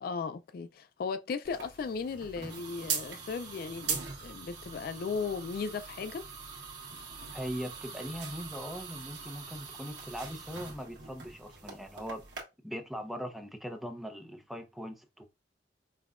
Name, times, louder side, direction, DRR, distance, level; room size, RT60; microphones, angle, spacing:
voice 1, 0.0-6.3, left 5 dB, 55° left, 0.3 m, -36 dB
sound 1, 1.4-12.4, right 5 dB, 80° right, 1.3 m, -41 dB
voice 2, 7.3-12.2 12.6-15.3, equal, ahead, 0.5 m, -40 dB
5.4 x 2.2 x 2.3 m
head